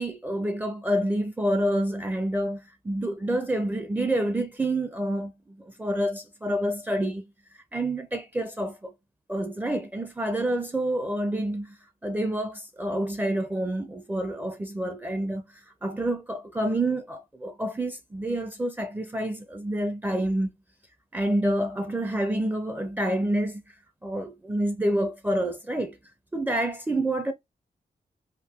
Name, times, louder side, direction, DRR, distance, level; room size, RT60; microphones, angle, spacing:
voice 1, 0.0-8.9 9.3-20.5 21.1-23.7 24.0-26.0 26.3-27.3, right 1 dB, 10° right, 0.4 m, -28 dB
2.9 x 2.5 x 3.3 m
wide cardioid pair, 120°, 15 cm